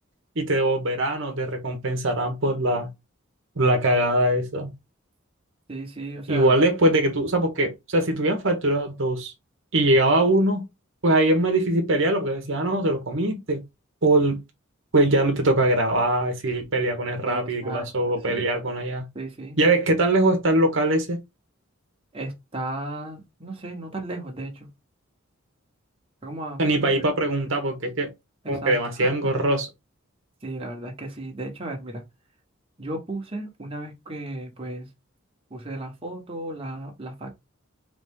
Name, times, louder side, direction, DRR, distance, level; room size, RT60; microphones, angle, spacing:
voice 1, 0.4-2.9 3.6-4.7 6.3-9.3 9.7-10.6 11.0-13.6 14.0-14.4 14.9-19.0 19.6-21.2 26.6-28.1 28.5-29.7, right 1 dB, 65° right, 1.1 m, -22 dB
voice 2, 5.7-6.5 17.2-18.4 19.1-19.6 22.1-24.7 26.2-27.0 28.4-29.3 30.4-32.0 32.8-34.9 35.5-37.3, right 1 dB, 30° right, 1.2 m, -35 dB
4.0 x 3.2 x 3.6 m
head